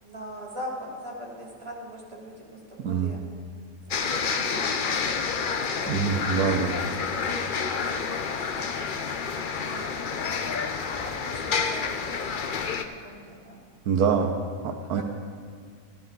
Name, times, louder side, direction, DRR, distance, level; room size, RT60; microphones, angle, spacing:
voice 1, 0.0-3.2 3.8-6.0 6.7-6.9 7.2-10.7 10.9-12.6 13.0-13.6 14.2-14.3 14.9-15.0, equal, 20° right, -4 dB, 2.8 m, -42 dB
voice 2, 2.8-3.1 5.9-6.8 13.9-14.3 14.6-15.0, right 6 dB, 80° right, 5 dB, 1.2 m, -25 dB
sound 1, 3.9-12.9, left 5 dB, 55° left, 0.5 m, -29 dB
16.5 x 11.0 x 3.9 m, 2.1 s
omnidirectional pair, 1.6 m